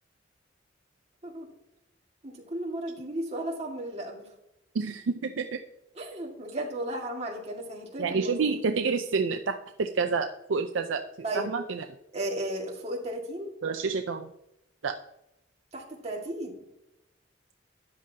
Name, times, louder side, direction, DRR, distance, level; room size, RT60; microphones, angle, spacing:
voice 1, 2.2-4.3 6.0-8.5 11.2-11.5 12.1-13.5 15.7-16.6, right 1 dB, 35° right, -1 dB, 1.9 m, -34 dB
voice 2, 4.7-5.6 8.0-11.0 11.3-11.8 13.6-14.3 14.8-15.0, right 4 dB, 80° right, 6 dB, 0.5 m, -28 dB
13.0 x 9.0 x 2.8 m, 0.85 s
head